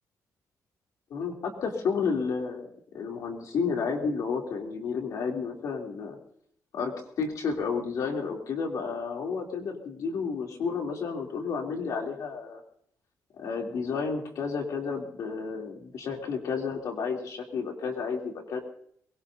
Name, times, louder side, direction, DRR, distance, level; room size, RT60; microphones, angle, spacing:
voice 1, 1.1-2.7 2.9-6.2 6.7-12.6 13.4-18.6, left 5 dB, 65° left, 1 dB, 3.1 m, -31 dB
23.0 x 21.5 x 2.7 m, 0.65 s
cardioid pair, 170°, 6 cm